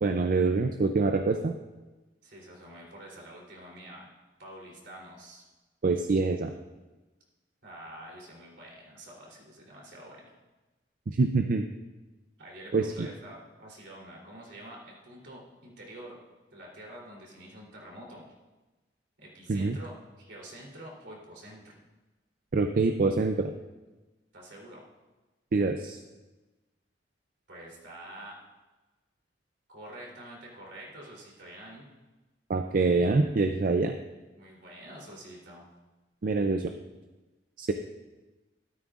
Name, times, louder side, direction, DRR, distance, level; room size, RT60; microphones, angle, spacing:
voice 1, 0.0-1.5 5.8-6.5 11.1-11.7 12.7-12.9 19.5-19.8 22.5-23.5 25.5-26.0 32.5-33.9 36.2-36.7 37.6-37.7, right 3 dB, 50° right, 6 dB, 0.5 m, -25 dB
voice 2, 2.2-4.1 4.4-5.4 7.6-10.3 12.4-16.2 16.5-18.3 19.2-21.7 24.3-24.8 27.5-28.4 29.7-31.9 34.3-35.7, right 1 dB, 75° right, -2 dB, 3.3 m, -47 dB
13.0 x 13.0 x 2.5 m, 1.2 s
head